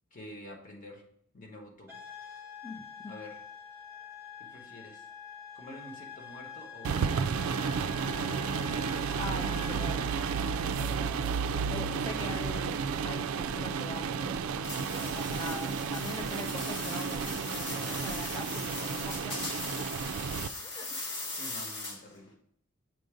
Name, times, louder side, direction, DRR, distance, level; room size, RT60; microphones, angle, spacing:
voice 1, 0.1-1.0 1.3-2.0 3.1-3.4 4.4-5.1 5.5-7.7 12.1-12.7 16.6-16.7 17.6-18.0 21.3-22.4, left 1 dB, 40° left, 1 dB, 1.2 m, -48 dB
sound 1, 1.9-10.8, left 7 dB, 10° right, 0.9 m, -46 dB
voice 2, 2.6-3.1 9.2-10.1 10.5-11.2 11.7-19.4 20.6-21.0, left 2 dB, 20° left, 6 dB, 0.5 m, -43 dB
sound 2, 6.8-20.5, right 6 dB, 85° right, 0.3 m, -32 dB
sound 3, 14.6-22.2, left 2 dB, 55° left, 1.3 m, -39 dB
7.8 x 2.6 x 5.0 m, 0.67 s
head